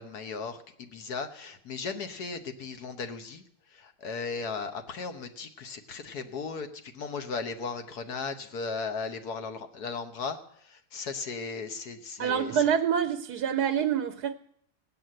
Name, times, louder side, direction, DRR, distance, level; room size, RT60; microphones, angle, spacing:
voice 1, 0.0-3.4 3.7-6.7 6.9-10.4 10.6-12.6, left 4 dB, 70° left, 1.8 m, -36 dB
voice 2, 12.2-14.3, right 8 dB, 75° right, 1.3 m, -26 dB
17.5 x 8.6 x 7.7 m
omnidirectional pair, 1.7 m